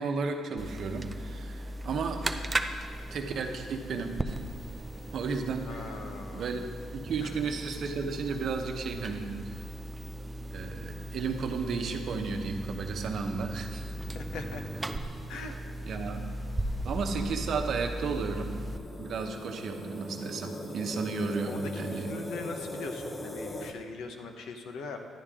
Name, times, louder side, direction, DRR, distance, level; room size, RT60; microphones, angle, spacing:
voice 1, 0.0-2.5 3.1-4.3 5.1-6.0 6.3-6.7 6.9-9.6 10.5-13.9 15.8-16.3 16.8-18.5 19.0-22.1, right 4 dB, 60° right, 4 dB, 0.9 m, -33 dB
sound 1, 0.6-18.8, right 1 dB, 20° right, 0.5 m, -37 dB
voice 2, 5.7-6.5 7.2-7.4 14.1-14.7 15.3-15.5 21.5-25.0, left 4 dB, 80° left, 4 dB, 1.0 m, -41 dB
sound 2, 17.3-23.7, left 1 dB, 20° left, 0.8 m, -41 dB
11.0 x 10.0 x 3.7 m, 2.1 s
cardioid pair, 125°, 0 cm